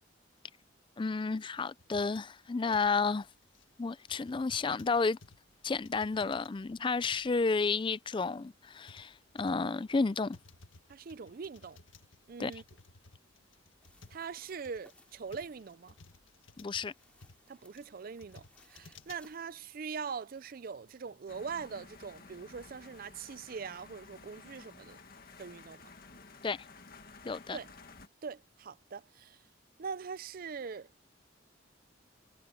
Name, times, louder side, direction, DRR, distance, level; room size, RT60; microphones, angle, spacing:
voice 1, 1.0-3.3 3.8-5.2 5.6-10.4 12.4-12.5 16.6-16.9 26.4-26.6 27.3-27.6, left 4 dB, 25° left, 0.4 m, -31 dB
sound 1, 1.8-19.3, left 4 dB, 90° left, 1.7 m, -58 dB
voice 2, 10.9-11.8 12.3-12.6 14.1-15.9 17.5-25.0 25.4-25.8 27.5-27.7 28.2-29.4 29.8-30.9, right 5 dB, 50° right, 0.4 m, -42 dB
sound 2, 13.8-19.4, left 1 dB, 5° left, 5.1 m, -66 dB
sound 3, 21.3-28.1, left 4 dB, 50° left, 1.8 m, -54 dB
head